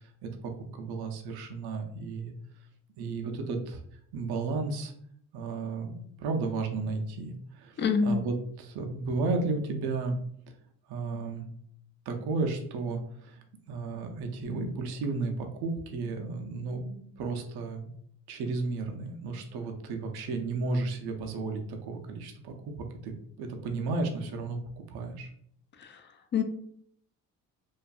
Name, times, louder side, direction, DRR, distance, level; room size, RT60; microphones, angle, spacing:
voice 1, 0.2-2.3 3.0-3.8 4.1-4.9 5.3-7.8 8.1-10.2 10.9-11.5 12.1-13.4 13.7-17.9 18.3-25.3, right 3 dB, 70° right, 3 dB, 0.6 m, -33 dB
voice 2, 7.8-8.2 25.8-26.4, left 5 dB, 30° left, 7 dB, 0.4 m, -27 dB
2.5 x 2.4 x 2.3 m, 0.66 s
supercardioid pair, 65°, 40 cm